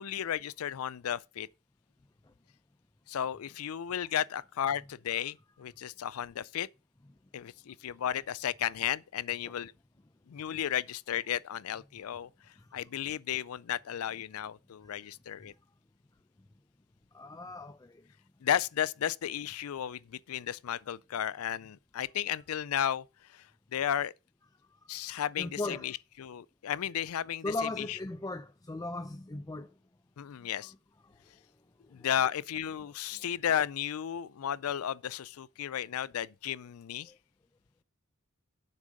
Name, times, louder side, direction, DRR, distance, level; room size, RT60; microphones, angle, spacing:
voice 1, 0.0-1.5 3.1-6.7 7.3-9.7 10.3-12.3 12.7-15.5 18.4-23.0 23.3-23.5 23.7-24.1 24.9-28.0 30.2-30.7 31.9-37.1, left 10 dB, 70° left, 0.4 m, -34 dB
voice 2, 17.1-18.0 25.4-25.9 27.4-29.7 30.6-30.7 31.9-32.1 33.1-33.2 37.1-37.2, left 2 dB, 15° left, 0.5 m, -38 dB
7.5 x 6.2 x 5.2 m
head